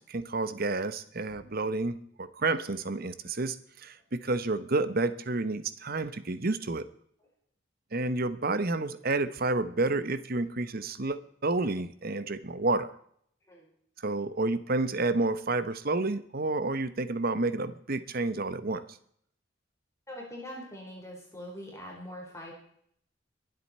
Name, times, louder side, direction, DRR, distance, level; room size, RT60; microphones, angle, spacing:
voice 1, 0.0-6.8 7.9-12.9 14.0-18.8, right 2 dB, 50° right, 13 dB, 1.0 m, -30 dB
voice 2, 20.1-22.5, equal, 15° left, -2 dB, 4.1 m, -43 dB
23.0 x 8.0 x 4.3 m, 0.65 s
head